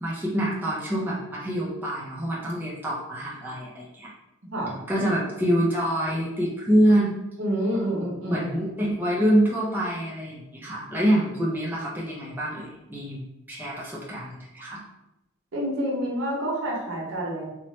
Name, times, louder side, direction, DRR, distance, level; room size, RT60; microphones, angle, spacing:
voice 1, 0.0-4.1 4.9-7.1 8.3-13.2 13.5-14.8, right 1 dB, 10° right, -5 dB, 0.4 m, -25 dB
voice 2, 7.4-8.4 15.5-17.5, equal, 75° right, -3 dB, 0.8 m, -28 dB
2.9 x 2.1 x 3.0 m, 0.95 s
head